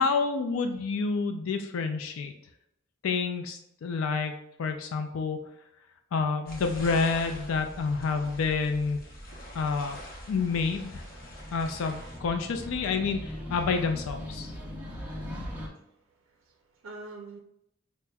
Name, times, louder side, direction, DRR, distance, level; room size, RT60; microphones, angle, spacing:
voice 1, 0.0-2.3 3.0-5.4 6.1-9.0 9.5-10.0 10.3-11.0 11.5-14.5, left 4 dB, 85° left, 5 dB, 0.4 m, -28 dB
sound 1, 6.5-12.2, equal, 45° left, 0.7 m, -44 dB
sound 2, 10.7-15.7, equal, 10° right, 0.6 m, -40 dB
voice 2, 16.3-17.4, right 2 dB, 85° right, 2 dB, 0.4 m, -46 dB
5.6 x 2.1 x 2.2 m, 0.79 s
head